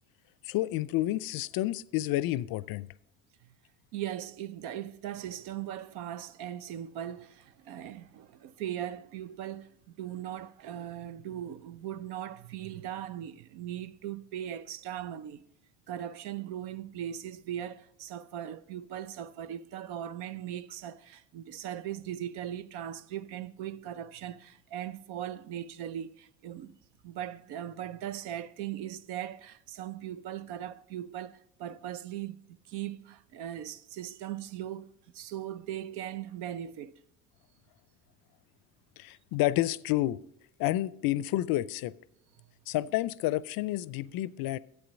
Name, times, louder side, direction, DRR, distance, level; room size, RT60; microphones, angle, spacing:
voice 1, 0.4-2.9 39.0-40.2 40.6-41.9 42.7-44.6, left 15 dB, 55° left, 0.5 m, -30 dB
voice 2, 3.9-15.4 15.9-26.7 27.0-32.4 32.7-34.9 35.1-36.9 42.4-42.5, right 11 dB, 70° right, 0.6 m, -39 dB
10.5 x 8.0 x 5.2 m
hypercardioid pair, 70°, 42 cm